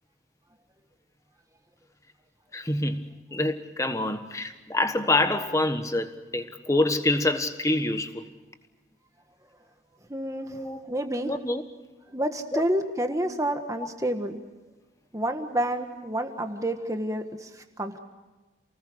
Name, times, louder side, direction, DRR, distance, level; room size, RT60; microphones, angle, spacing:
voice 1, 2.5-8.3 10.5-10.8 11.2-11.6 12.5-12.6, left 2 dB, 15° left, 1.3 m, -26 dB
voice 2, 10.1-11.3 12.1-14.4 15.1-18.0, right 1 dB, 15° right, 1.5 m, -29 dB
29.0 x 20.0 x 6.3 m
head